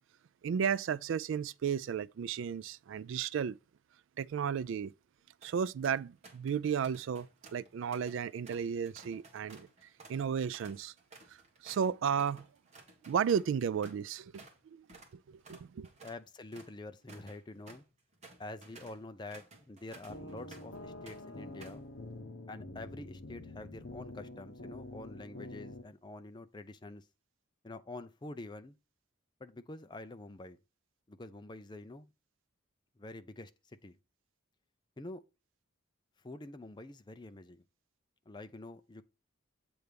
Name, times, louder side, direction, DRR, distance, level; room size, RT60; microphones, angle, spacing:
voice 1, 0.4-3.6 4.2-4.9 5.4-9.7 10.1-10.9 11.3-12.5 13.1-14.8 15.1-15.9, right 7 dB, 70° right, 0.3 m, -34 dB
sound 1, 5.2-5.5 5.8-6.6 6.8-14.6 14.9-15.1 15.4-20.8 21.1-21.9, right 3 dB, 35° right, 1.6 m, -56 dB
voice 2, 16.0-17.8 18.4-21.8 22.5-27.0 27.6-28.8 29.4-30.6 31.1-32.1 33.0-34.0 35.0-35.2 36.2-37.6 38.3-39.0, left 2 dB, 20° left, 0.5 m, -47 dB
sound 2, 20.1-25.8, left 2 dB, 60° left, 1.0 m, -47 dB
7.9 x 3.4 x 5.1 m
head